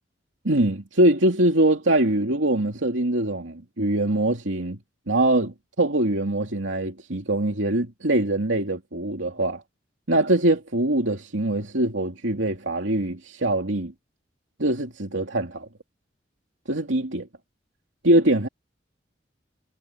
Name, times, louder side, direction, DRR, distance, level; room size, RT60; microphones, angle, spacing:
voice 1, 0.4-4.8 5.1-9.6 10.1-13.9 14.6-15.7 16.7-17.3 18.0-18.5, right 1 dB, 80° right, 2.7 m, -23 dB
head